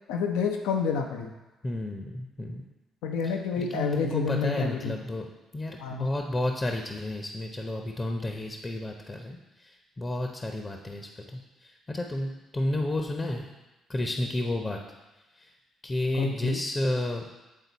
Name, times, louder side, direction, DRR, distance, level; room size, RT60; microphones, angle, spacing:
voice 1, 0.1-1.3 3.0-5.0 5.8-6.1 16.1-16.6, left 5 dB, 75° left, 3 dB, 0.6 m, -29 dB
voice 2, 1.6-2.6 3.2-5.3 5.5-13.5 13.9-14.8 15.4-15.5 15.8-17.2, left 1 dB, 30° left, 3 dB, 0.7 m, -31 dB
8.5 x 4.0 x 4.0 m, 1.1 s
hypercardioid pair, 45°, 0 cm